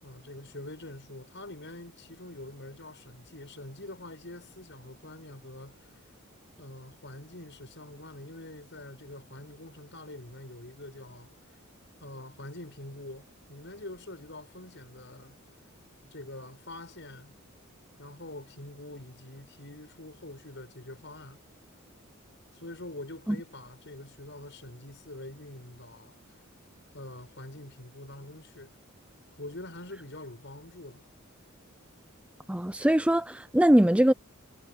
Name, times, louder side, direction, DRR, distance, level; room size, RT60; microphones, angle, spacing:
voice 1, 0.0-6.0 6.6-11.3 12.0-15.4 16.0-17.4 18.0-21.4 22.5-26.2 26.9-28.8 29.4-31.0, left 1 dB, 55° left, 7.3 m, -45 dB
voice 2, 32.5-34.1, right 1 dB, 5° right, 0.5 m, -22 dB
head